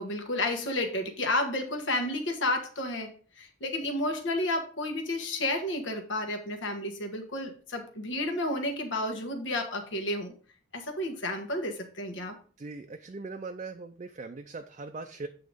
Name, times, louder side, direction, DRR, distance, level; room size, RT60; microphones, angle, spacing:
voice 1, 0.0-10.3 10.7-12.3, left 1 dB, 80° left, 4 dB, 1.4 m, -31 dB
voice 2, 12.6-15.3, right 3 dB, 40° right, 5 dB, 0.4 m, -40 dB
8.4 x 3.9 x 5.1 m, 0.41 s
head